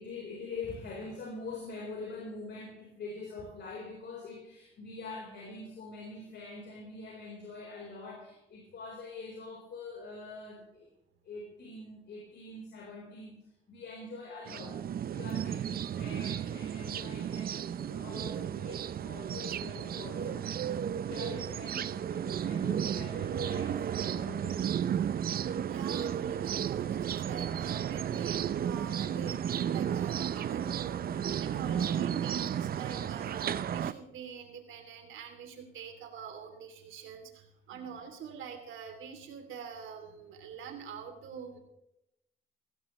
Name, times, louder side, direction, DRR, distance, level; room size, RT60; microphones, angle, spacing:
voice 1, 0.0-10.9 11.2-13.4 13.7-20.5 20.9-25.0 37.7-38.0, left 3 dB, 60° left, -1 dB, 4.3 m, -44 dB
sound 1, 14.5-33.9, right 9 dB, 50° right, 0.5 m, -33 dB
voice 2, 25.6-28.4 28.6-41.6, right 6 dB, 80° right, 4 dB, 3.0 m, -45 dB
16.5 x 16.0 x 3.2 m, 0.85 s
cardioid pair, 90°, 20 cm